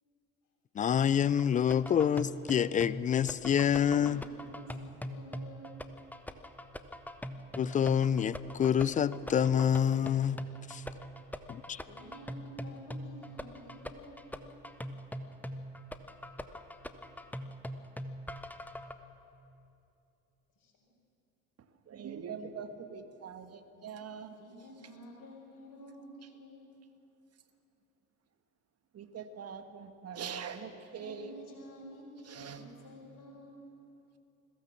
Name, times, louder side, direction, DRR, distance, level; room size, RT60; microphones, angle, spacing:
voice 1, 0.8-4.2 7.6-10.8 11.5-11.8, left 8 dB, 20° left, 18 dB, 0.4 m, -27 dB
sound 1, 1.4-18.9, equal, 5° left, 1.1 m, -42 dB
voice 2, 3.3-5.8 11.9-14.6 20.6-20.9 24.3-26.7 31.0-33.7, equal, 45° left, -7 dB, 5.8 m, -51 dB
voice 3, 21.9-24.4 28.9-31.3 32.3-32.6, right 6 dB, 35° right, 8 dB, 1.7 m, -43 dB
21.5 x 16.5 x 7.2 m, 2.7 s
figure-of-eight pair, 60°, 44 cm